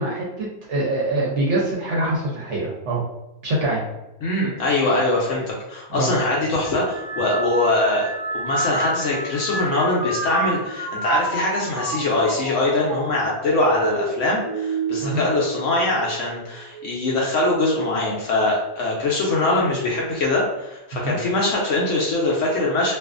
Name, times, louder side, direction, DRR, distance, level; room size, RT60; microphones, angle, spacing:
voice 1, 0.0-3.0 3.4-3.8 5.9-6.1 15.0-15.2 20.9-21.2, right 2 dB, 60° right, -4 dB, 0.8 m, -24 dB
voice 2, 4.2-23.0, left 2 dB, 65° left, -3 dB, 0.8 m, -22 dB
sound 1, 6.6-16.3 16.7-17.3 18.3-18.6, right 2 dB, 30° right, 1.0 m, -29 dB
2.5 x 2.4 x 2.4 m, 0.96 s
omnidirectional pair, 1.6 m